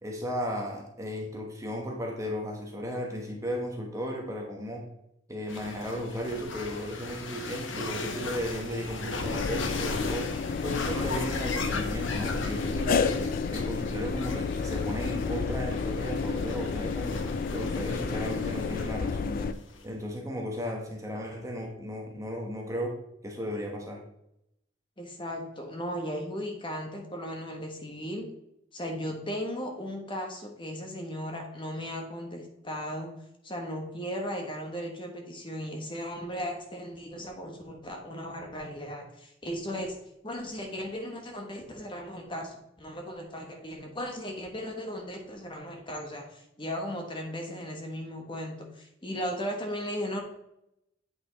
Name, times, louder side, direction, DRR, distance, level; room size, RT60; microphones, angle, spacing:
voice 1, 0.0-4.9 5.3-10.3 10.6-17.2 17.5-19.5 19.8-22.9 23.2-24.0, equal, 15° right, 1 dB, 1.1 m, -35 dB
sound 1, 5.5-19.8, left 3 dB, 75° left, 1.0 m, -38 dB
sound 2, 9.2-19.5, left 5 dB, 45° left, 0.3 m, -31 dB
voice 2, 25.0-28.3 28.7-33.1 33.4-39.9 40.2-50.2, equal, 25° left, 1 dB, 1.3 m, -36 dB
8.4 x 5.3 x 4.0 m, 0.82 s
head